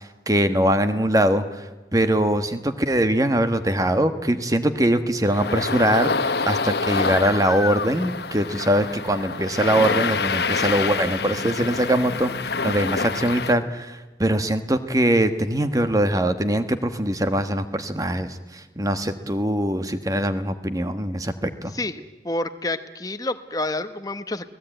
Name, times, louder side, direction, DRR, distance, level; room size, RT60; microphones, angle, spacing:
voice 1, 0.3-1.6 1.9-12.3 12.6-21.7, right 1 dB, 20° right, 9 dB, 1.3 m, -22 dB
sound 1, 5.3-13.5, left 4 dB, 65° left, 1.2 m, -26 dB
voice 2, 21.7-24.5, left 2 dB, 20° left, 10 dB, 1.0 m, -29 dB
29.5 x 18.5 x 9.0 m, 1.1 s
head